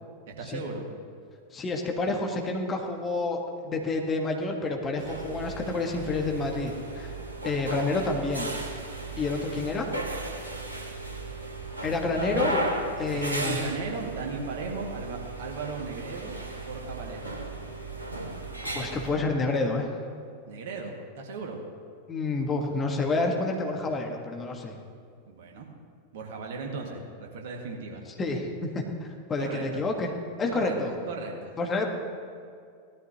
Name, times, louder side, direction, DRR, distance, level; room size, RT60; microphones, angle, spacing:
voice 1, 0.4-0.9 9.1-9.5 11.7-12.1 13.1-17.3 20.5-21.6 25.3-25.7 26.1-28.0 29.4-29.8 30.5-31.6, right 4 dB, 55° right, 1 dB, 1.9 m, -37 dB
voice 2, 1.5-7.1 7.4-8.5 9.2-9.9 11.8-12.6 13.0-13.6 18.7-19.9 22.1-24.8 28.2-30.1 30.4-31.0 31.6-31.9, left 3 dB, 20° left, 2 dB, 1.5 m, -29 dB
sound 1, 5.0-19.1, right 2 dB, 80° right, 1.7 m, -35 dB
17.5 x 12.5 x 2.9 m, 2.3 s
figure-of-eight pair, 90°, 0 cm